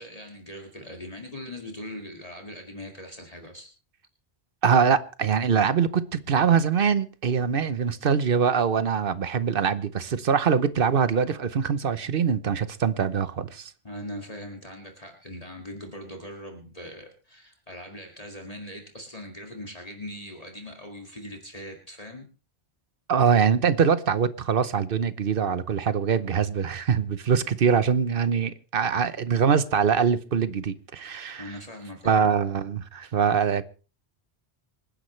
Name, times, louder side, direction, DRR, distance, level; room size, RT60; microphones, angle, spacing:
voice 1, 0.0-3.7 13.8-22.3 31.4-32.2, left 1 dB, 35° left, 2.1 m, -40 dB
voice 2, 4.6-13.7 23.1-31.5 32.0-33.6, right 6 dB, 55° right, 1.0 m, -23 dB
26.5 x 10.0 x 3.2 m
omnidirectional pair, 1.1 m